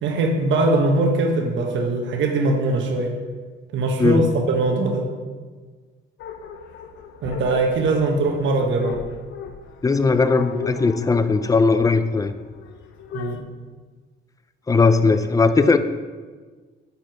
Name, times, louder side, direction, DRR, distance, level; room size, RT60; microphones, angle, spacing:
voice 1, 0.0-3.1 3.7-5.1 7.2-9.0 13.1-13.4, right 2 dB, 70° right, 2 dB, 1.0 m, -21 dB
sound 1, 6.2-13.4, left 6 dB, 70° left, 0.6 m, -37 dB
voice 2, 9.8-12.3 14.7-15.8, left 4 dB, 15° left, 11 dB, 0.4 m, -18 dB
6.8 x 4.6 x 4.5 m, 1.4 s
cardioid pair, 90°, 20 cm